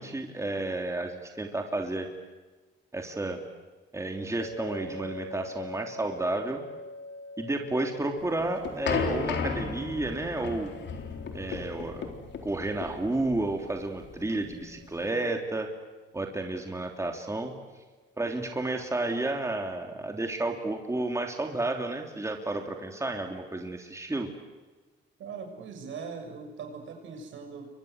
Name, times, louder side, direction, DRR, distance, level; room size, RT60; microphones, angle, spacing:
voice 1, 0.0-2.1 2.9-3.4 3.9-6.6 7.4-10.7 11.3-12.1 12.4-15.7 16.1-17.5 18.2-24.3, right 2 dB, 15° right, 3 dB, 3.2 m, -31 dB
sound 1, 4.4-17.5, left 2 dB, 45° left, 5.8 m, -46 dB
sound 2, 8.2-15.1, left 5 dB, 65° left, 4.1 m, -34 dB
voice 2, 25.2-27.7, right 5 dB, 75° right, 4 dB, 6.8 m, -40 dB
29.5 x 23.5 x 8.1 m, 1.2 s
cardioid pair, 90°, 20 cm